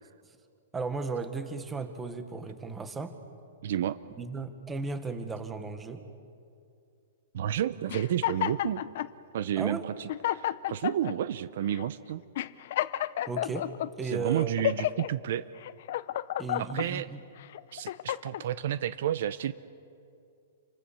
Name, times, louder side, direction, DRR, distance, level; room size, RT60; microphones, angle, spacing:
voice 1, 0.7-3.1 4.1-6.0 9.6-9.8 13.3-13.7 14.0-14.5 16.4-17.2, right 4 dB, 10° right, 8 dB, 1.5 m, -35 dB
voice 2, 3.6-4.0 7.3-8.8 9.3-12.2 14.0-15.4 16.6-17.1 17.7-19.5, right 11 dB, 55° right, 14 dB, 0.8 m, -31 dB
sound 1, 7.9-9.1 9.7-9.8 10.1-11.1 11.7-11.9 12.3-13.9 14.4-15.1 15.6-16.9 17.4-18.4, left 12 dB, 50° left, 0.8 m, -31 dB
29.5 x 25.0 x 7.1 m, 2.5 s
hypercardioid pair, 165°, 0 cm